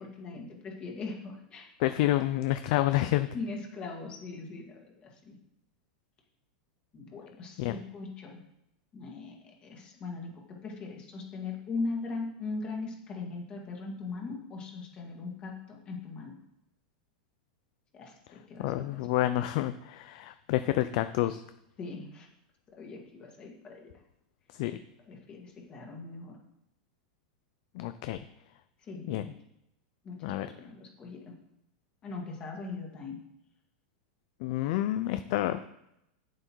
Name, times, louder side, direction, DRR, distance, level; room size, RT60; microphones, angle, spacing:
voice 1, 0.0-1.7 3.3-5.3 6.9-8.4 8.9-16.3 17.9-19.3 21.8-22.3 22.7-23.9 25.1-26.4 28.8-29.3 30.0-31.3 32.0-33.2, left 3 dB, 25° left, 0 dB, 1.8 m, -40 dB
voice 2, 1.8-3.3 7.6-7.8 18.6-21.4 24.5-24.8 27.7-28.2 29.1-29.3 30.2-30.5 34.4-35.7, left 14 dB, 50° left, 11 dB, 0.4 m, -29 dB
7.9 x 7.7 x 4.6 m, 0.82 s
supercardioid pair, 155°, 4 cm